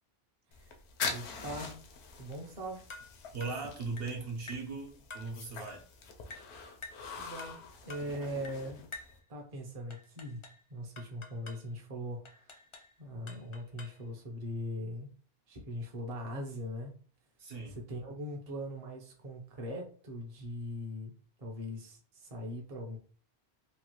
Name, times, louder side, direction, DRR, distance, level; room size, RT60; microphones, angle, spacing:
sound 1, 0.5-9.2, left 5 dB, 90° left, 0.9 m, -44 dB
voice 1, 1.1-1.8 2.2-2.8 7.2-8.8 9.3-10.4 10.7-12.5 13.0-15.1 15.5-16.9 17.9-21.1 21.4-23.0, equal, 40° right, 0 dB, 0.7 m, -40 dB
sound 2, 2.9-3.1 3.4-3.6 4.0-4.2 4.5-4.7 5.1-5.3 5.7-5.9 6.3-6.5 6.8-7.1 7.4-7.6 7.9-8.1 8.4-8.6 8.9-9.2 9.9-10.6 11.0-11.7 12.3-12.9 13.3-14.0, left 3 dB, 45° left, 0.4 m, -48 dB
voice 2, 3.3-5.8 17.4-17.8, right 3 dB, 65° right, 0 dB, 1.0 m, -39 dB
3.1 x 2.3 x 2.9 m, 0.40 s
omnidirectional pair, 1.1 m